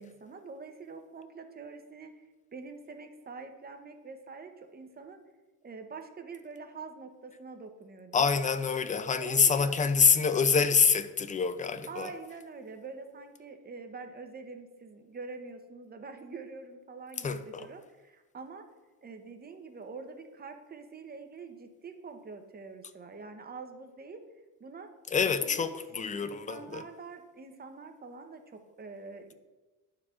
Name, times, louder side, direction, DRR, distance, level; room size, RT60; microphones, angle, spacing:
voice 1, 0.0-2.2 2.5-5.2 5.6-8.3 9.2-9.8 11.9-18.7 19.0-24.2 24.6-24.9 25.4-25.8 26.2-29.3, right 4 dB, 25° right, 0.8 m, -45 dB
voice 2, 8.1-12.1 17.2-17.7 25.1-26.8, left 6 dB, 20° left, 0.4 m, -26 dB
11.5 x 4.7 x 2.4 m
cardioid pair, 110°, 36 cm